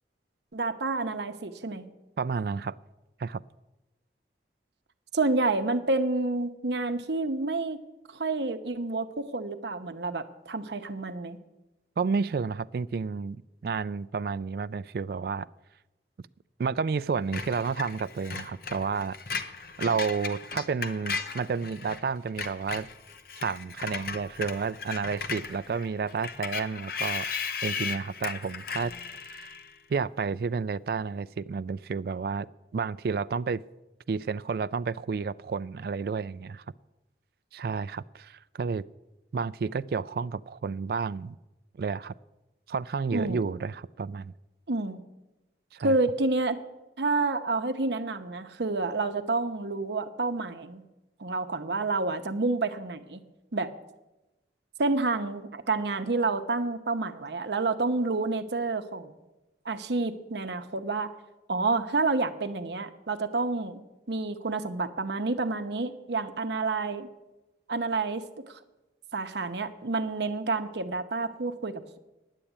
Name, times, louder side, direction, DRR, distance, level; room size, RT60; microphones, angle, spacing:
voice 1, 0.5-1.9 5.1-7.8 8.1-11.4 43.1-43.4 44.7-45.0 45.8-46.6 47.0-50.8 51.2-53.2 53.5-53.7 54.8-59.1 59.6-61.1 61.5-63.8 64.1-67.1 67.7-68.6 69.1-72.0, right 3 dB, 75° right, 0.8 m, -29 dB
voice 2, 2.2-2.7 3.2-3.4 12.0-15.5 16.6-19.2 19.8-22.9 23.4-27.3 27.6-28.9 29.2-29.5 29.9-32.5 32.7-33.6 34.1-36.6 37.5-38.8 39.3-41.4 41.8-42.1 42.7-44.3 45.7-45.9, right 5 dB, 55° right, 0.3 m, -31 dB
Screech, 17.3-22.0 22.3-29.7, left 5 dB, 55° left, 0.8 m, -36 dB
10.0 x 8.1 x 8.7 m
head